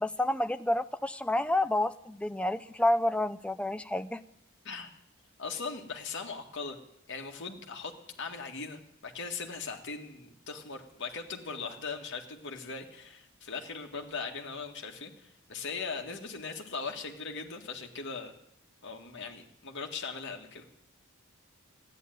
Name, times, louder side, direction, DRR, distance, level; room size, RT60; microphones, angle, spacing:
voice 1, 0.0-4.2, left 1 dB, 5° left, 11 dB, 0.5 m, -29 dB
voice 2, 5.4-6.8 7.1-7.9 8.2-18.3 18.8-20.7, left 4 dB, 55° left, 3 dB, 2.0 m, -39 dB
14.0 x 10.5 x 9.3 m, 0.75 s
head